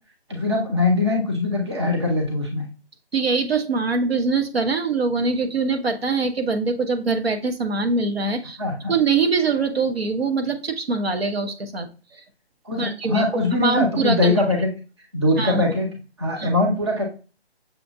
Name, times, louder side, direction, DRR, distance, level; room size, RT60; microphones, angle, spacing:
voice 1, 0.3-2.6 8.6-8.9 12.6-14.7 15.1-15.9 16.2-17.0, left 2 dB, 25° right, 1 dB, 0.8 m, -22 dB
voice 2, 3.1-8.6 8.9-11.9 12.8-13.2 13.6-14.4 15.4-15.6 16.4-16.5, right 4 dB, 65° right, 6 dB, 0.9 m, -23 dB
6.6 x 2.5 x 2.5 m, 0.33 s
figure-of-eight pair, 170°, 33 cm